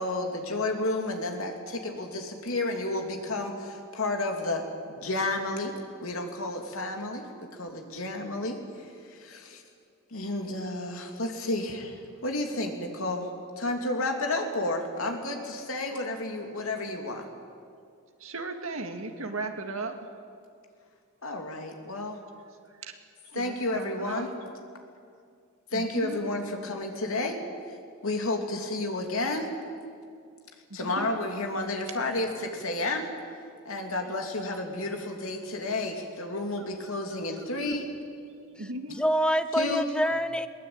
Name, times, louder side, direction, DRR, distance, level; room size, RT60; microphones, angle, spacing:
voice 1, 0.0-5.7 6.0-9.6 10.1-13.3 13.6-17.3 21.2-22.2 23.3-24.3 25.7-27.4 28.0-29.5 30.7-33.1 33.6-37.8 39.6-39.8, left 2 dB, 80° left, 3 dB, 2.9 m, -31 dB
voice 2, 18.2-19.9 23.4-24.3 25.7-26.3 30.7-31.1 38.6-39.0, right 2 dB, 75° right, 5 dB, 2.0 m, -36 dB
voice 3, 38.6-40.5, equal, 5° left, 12 dB, 0.5 m, -26 dB
21.5 x 19.0 x 8.8 m, 2.3 s
head